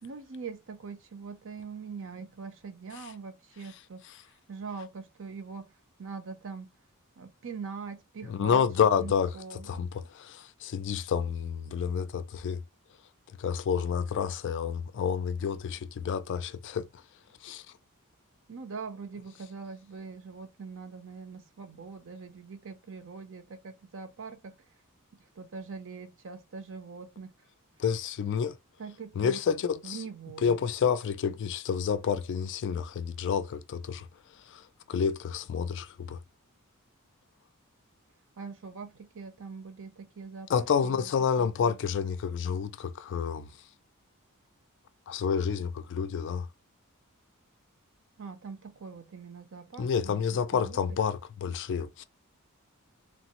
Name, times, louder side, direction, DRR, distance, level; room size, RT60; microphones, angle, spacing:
voice 1, 0.0-4.0 4.5-5.7 6.0-6.7 7.2-8.7 9.0-9.9 18.5-24.5 25.4-27.3 28.8-29.4 29.8-30.6 38.4-41.1 41.4-41.8 48.2-50.8, right 5 dB, 60° right, 0.6 m, -42 dB
voice 2, 8.2-12.6 13.4-17.0 17.4-17.7 27.8-28.6 29.2-30.0 30.4-34.1 34.3-36.2 40.5-43.6 45.1-46.5 49.8-52.0, left 7 dB, 55° left, 0.3 m, -29 dB
3.1 x 2.0 x 2.9 m
head